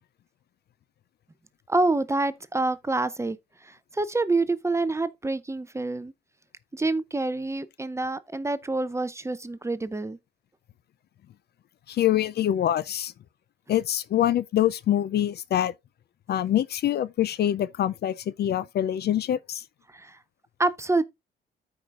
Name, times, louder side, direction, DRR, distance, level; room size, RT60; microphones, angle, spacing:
voice 1, 1.7-3.4 3.6-6.1 6.7-10.2 19.9-20.2 20.6-21.0, right 2 dB, 15° right, 0.6 m, -27 dB
voice 2, 11.9-13.1 13.7-15.7 16.3-19.6, left 11 dB, 55° left, 0.4 m, -25 dB
14.0 x 4.9 x 2.4 m
cardioid pair, 90°, 20 cm